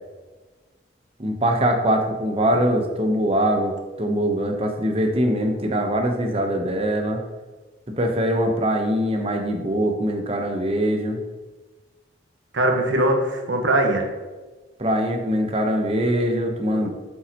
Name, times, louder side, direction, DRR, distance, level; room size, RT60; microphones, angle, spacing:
voice 1, 1.2-7.2 7.9-11.2 14.8-16.9, equal, 30° right, 3 dB, 0.9 m, -22 dB
voice 2, 12.5-14.0 16.7-16.9, right 1 dB, 85° right, 2 dB, 1.3 m, -21 dB
8.6 x 7.0 x 3.0 m, 1.3 s
head